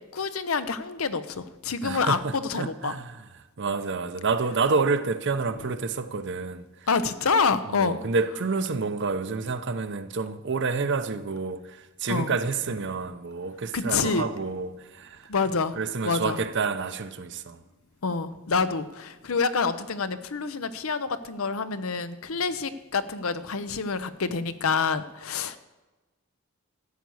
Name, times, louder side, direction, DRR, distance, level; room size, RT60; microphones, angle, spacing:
voice 1, 0.1-3.0 6.9-8.0 12.1-12.3 13.7-14.3 15.3-15.8 16.0-16.4 18.0-25.6, left 4 dB, 85° left, 0.8 m, -27 dB
voice 2, 1.8-3.2 3.6-6.6 7.7-15.3 15.8-17.6, right 4 dB, 60° right, 0.8 m, -29 dB
13.0 x 8.3 x 6.4 m
head